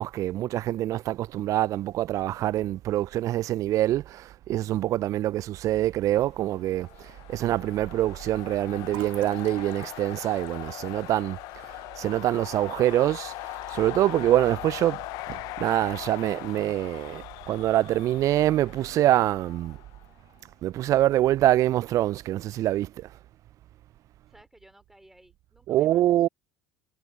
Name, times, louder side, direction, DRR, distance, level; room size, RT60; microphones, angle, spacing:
voice 1, 0.0-11.4 11.7-19.8 20.6-23.1 25.7-26.3, right 14 dB, 50° right, 0.4 m, -25 dB
sound 1, 6.3-20.1, left 22 dB, 60° left, 0.6 m, -40 dB
Fill (with liquid), 8.9-12.5 12.9-13.0 13.3-14.0, right 27 dB, 70° right, 3.3 m, -47 dB
voice 2, 24.3-26.3, right 1 dB, 5° right, 4.2 m, -57 dB
hypercardioid pair, 65°, 7 cm